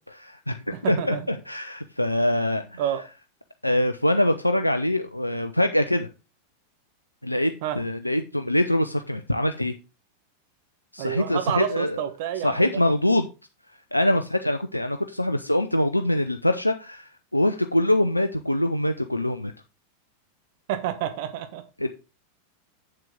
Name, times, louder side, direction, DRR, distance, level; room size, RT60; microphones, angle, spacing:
voice 1, 0.1-2.8 3.6-6.1 7.2-9.7 10.9-12.0 12.4-13.3 13.9-19.5 21.8-21.9, left 1 dB, 85° left, 0.6 m, -24 dB
voice 2, 0.7-1.2 2.8-3.0 7.6-7.8 11.0-12.6 20.7-21.6, right 11 dB, 50° right, 1.2 m, -29 dB
7.8 x 7.5 x 3.7 m
figure-of-eight pair, 90°, 0 cm